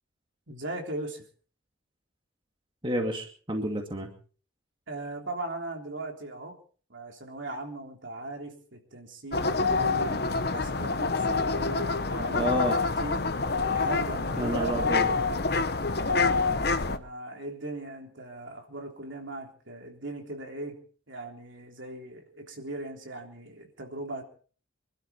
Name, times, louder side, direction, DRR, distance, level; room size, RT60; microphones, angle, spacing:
voice 1, 0.5-1.2 4.9-6.6 6.9-13.2 13.6-14.8 16.1-20.8 21.1-24.2, right 2 dB, 70° right, 2 dB, 3.5 m, -39 dB
voice 2, 2.8-4.1 12.3-12.8 14.4-15.1, equal, 25° right, 3 dB, 2.3 m, -29 dB
sound 1, 9.3-17.0, left 4 dB, 50° left, 1.0 m, -27 dB
25.5 x 12.5 x 4.4 m, 0.41 s
head